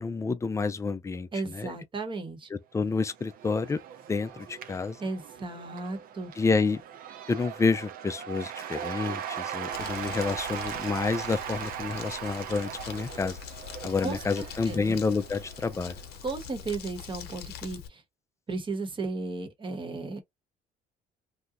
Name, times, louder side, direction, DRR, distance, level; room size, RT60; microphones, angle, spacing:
voice 1, 0.0-1.7 2.5-3.8 4.1-5.0 6.4-6.8 7.3-13.4 13.8-16.0, left 4 dB, 15° left, 0.4 m, -29 dB
voice 2, 1.3-2.5 5.0-6.3 14.0-15.0 16.2-18.0 18.5-20.2, right 3 dB, 30° right, 1.0 m, -35 dB
Cheering / Applause / Crowd, 2.9-16.3, right 9 dB, 60° right, 0.5 m, -39 dB
Crumpling crinkling, 9.7-17.9, left 9 dB, 75° left, 0.8 m, -43 dB
2.8 x 2.1 x 3.6 m
cardioid pair, 110°, 17 cm